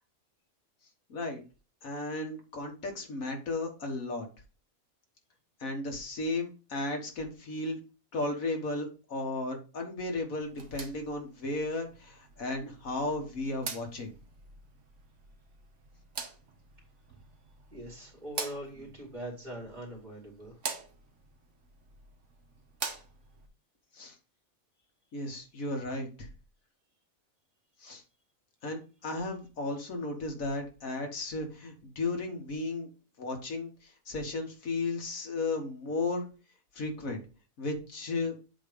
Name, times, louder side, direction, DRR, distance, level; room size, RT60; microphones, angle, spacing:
voice 1, 1.1-1.4 1.8-4.3 5.6-7.8 8.1-14.1 23.9-24.2 25.1-26.3 27.8-28.0 28.6-32.9 33.2-36.3 36.7-37.2 37.6-38.4, left 2 dB, 80° left, 3 dB, 1.9 m, -34 dB
sound 1, 10.4-23.5, right 5 dB, 60° right, 1.4 m, -45 dB
voice 2, 17.7-20.6, right 1 dB, 30° right, -2 dB, 2.5 m, -42 dB
7.9 x 3.1 x 5.2 m, 0.32 s
omnidirectional pair, 1.4 m